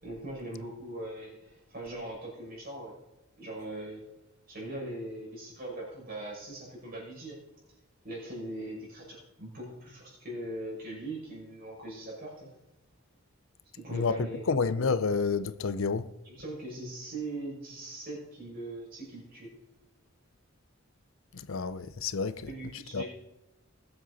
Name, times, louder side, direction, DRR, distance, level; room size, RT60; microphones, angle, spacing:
voice 1, 0.0-3.0 3.4-4.0 4.5-7.4 8.0-12.5 13.7-14.6 16.2-19.5 22.4-23.1, right 1 dB, 45° right, 5.8 m, -40 dB
voice 2, 14.5-16.1 21.3-22.5 22.9-23.0, left 4 dB, 65° left, 0.5 m, -29 dB
20.0 x 7.9 x 4.1 m
head